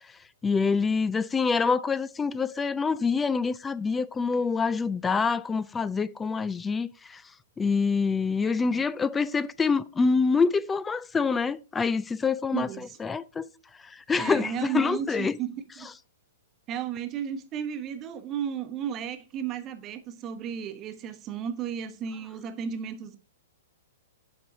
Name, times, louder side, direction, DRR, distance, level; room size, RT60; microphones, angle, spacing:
voice 1, 0.4-7.2 7.6-12.7 13.0-13.5 13.8-15.4, left 5 dB, 15° left, 0.3 m, -26 dB
voice 2, 8.5-8.8 12.5-13.0 14.1-15.9 16.7-23.2, right 9 dB, 30° right, 1.0 m, -34 dB
7.7 x 5.4 x 4.7 m
hypercardioid pair, 120°, 0 cm